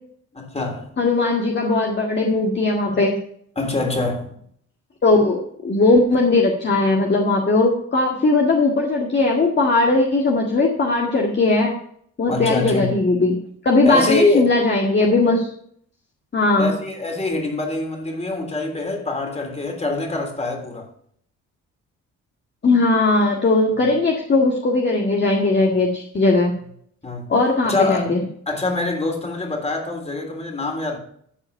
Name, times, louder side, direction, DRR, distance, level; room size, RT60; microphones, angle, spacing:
voice 1, 0.3-0.9 3.5-4.4 12.3-12.9 13.8-14.5 16.6-20.9 27.0-27.3 27.6-28.1 28.5-31.0, left 2 dB, 20° left, 3.3 m, -24 dB
voice 2, 1.0-3.2 5.0-11.7 12.2-13.3 13.6-15.5 16.3-16.7 22.6-26.5 27.3-28.2, left 2 dB, 35° left, 1.8 m, -18 dB
13.5 x 4.9 x 5.6 m
cardioid pair, 90°, 30 cm